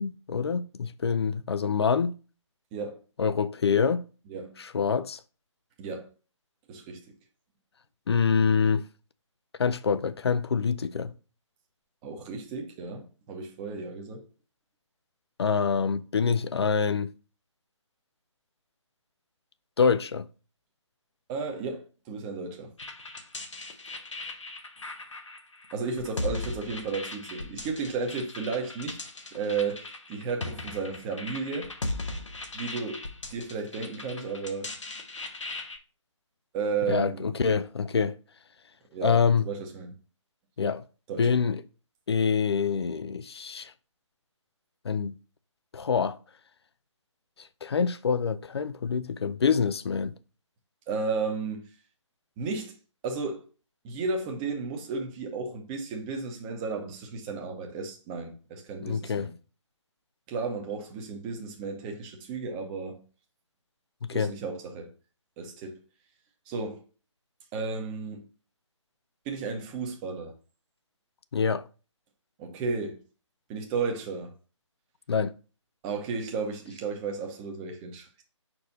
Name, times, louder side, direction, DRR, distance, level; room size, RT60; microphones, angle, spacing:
voice 1, 0.0-2.1 3.2-4.0 4.6-5.2 8.1-8.8 9.6-11.1 15.4-17.1 19.8-20.3 36.9-38.2 39.0-39.4 40.6-40.8 41.2-41.6 42.1-43.7 44.8-45.1 45.7-46.2 47.6-50.1 58.8-59.3 64.0-64.3 71.3-71.6 75.1-75.3, left 6 dB, 55° left, 0.5 m, -25 dB
voice 2, 2.7-3.0 4.3-4.5 5.8-6.1 6.7-7.0 12.0-14.2 21.3-22.7 25.7-29.0 29.3-31.7 32.5-33.0 33.3-34.7 36.5-37.3 38.9-39.2 39.4-39.9 41.1-41.3 50.9-51.7 52.4-52.7 53.0-53.5 53.8-59.3 60.3-63.0 64.1-64.9 65.4-65.8 66.5-66.8 67.5-68.2 69.2-70.3 72.4-73.0 73.5-74.3 75.8-78.1, right 4 dB, 15° right, 0.8 m, -33 dB
sound 1, 22.8-35.8, left 2 dB, 70° left, 1.2 m, -38 dB
5.1 x 4.5 x 4.0 m
figure-of-eight pair, 145°, 16 cm